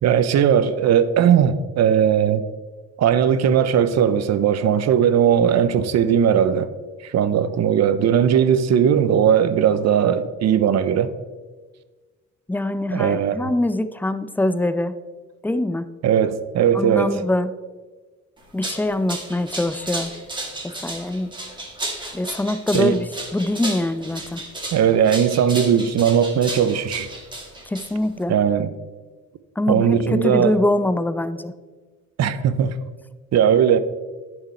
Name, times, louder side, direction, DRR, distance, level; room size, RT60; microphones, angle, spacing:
voice 1, 0.0-2.4 3.0-6.7 7.0-11.1 12.9-13.5 16.0-17.1 22.7-23.0 24.7-27.1 28.3-28.7 29.7-30.6 32.2-32.7 33.3-33.8, right 8 dB, 60° right, 0.7 m, -18 dB
voice 2, 12.5-14.9 15.4-15.9 16.7-17.5 18.5-20.1 20.6-21.3 22.1-24.4 27.7-28.4 29.6-31.5, left 1 dB, 5° left, 0.4 m, -23 dB
sound 1, 18.4-28.2, right 2 dB, 15° right, 2.1 m, -33 dB
10.5 x 4.9 x 4.2 m
cardioid pair, 90°, 30 cm